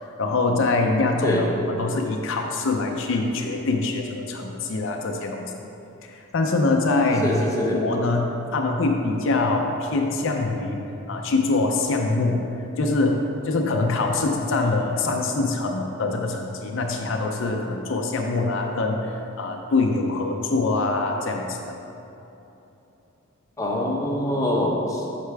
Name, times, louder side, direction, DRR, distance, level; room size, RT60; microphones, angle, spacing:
voice 1, 0.2-5.5 6.0-7.4 7.7-10.8 11.1-12.4 12.8-21.8, left 3 dB, 60° left, 2 dB, 0.5 m, -24 dB
voice 2, 7.2-7.8 23.6-25.2, left 1 dB, 15° left, -2 dB, 0.7 m, -24 dB
8.0 x 5.8 x 3.4 m, 3.0 s
head